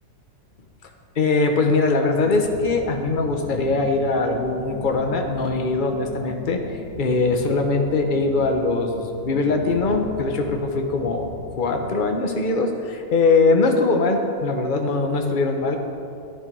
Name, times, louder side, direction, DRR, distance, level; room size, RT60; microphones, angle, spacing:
voice 1, 1.2-15.8, left 3 dB, 35° left, 3 dB, 1.1 m, -21 dB
sound 1, 2.1-12.1, left 2 dB, 55° right, 4.2 m, -39 dB
12.0 x 10.5 x 5.4 m, 2.6 s
omnidirectional pair, 1.9 m